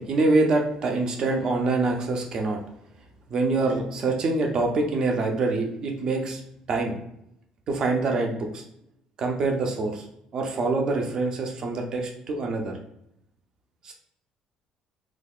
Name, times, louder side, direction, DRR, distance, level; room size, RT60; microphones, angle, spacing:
voice 1, 0.0-2.6 3.3-6.4 6.7-7.0 7.7-8.6 9.2-10.0 10.3-12.7 13.8-13.9, right 3 dB, 35° right, 2 dB, 0.6 m, -25 dB
4.0 x 2.8 x 2.4 m, 0.79 s
cardioid pair, 170°, 2 cm